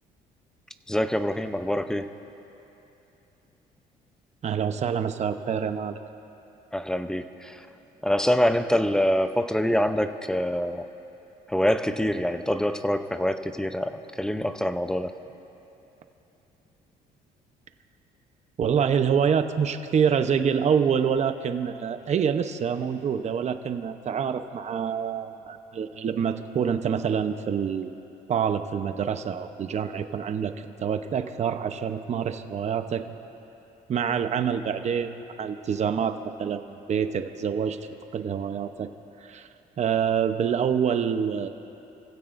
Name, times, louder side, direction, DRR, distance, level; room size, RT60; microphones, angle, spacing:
voice 1, 0.9-2.2 6.7-7.7 8.0-10.9 11.5-15.2, equal, 5° left, 9 dB, 0.7 m, -25 dB
voice 2, 4.4-6.0 18.6-27.9 28.3-33.1 33.9-37.8 38.1-38.9 39.2-39.5 39.8-41.5, right 7 dB, 40° right, 8 dB, 0.9 m, -26 dB
28.5 x 16.0 x 2.6 m, 2.9 s
cardioid pair, 110°, 17 cm